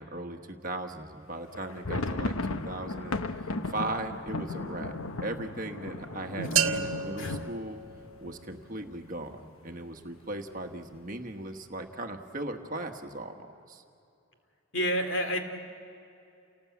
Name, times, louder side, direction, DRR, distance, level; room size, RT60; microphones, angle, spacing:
voice 1, 0.0-7.8 8.2-13.8, right 2 dB, 40° right, 4 dB, 1.3 m, -38 dB
sound 1, 1.5-9.2 9.5-9.6 9.9-10.1 10.7-11.2, left 2 dB, 75° left, 1.0 m, -36 dB
sound 2, 6.6-8.5, right 7 dB, 70° right, 1.1 m, -31 dB
voice 2, 14.7-15.4, equal, 55° left, 5 dB, 2.6 m, -29 dB
29.0 x 19.0 x 8.4 m, 2.7 s
head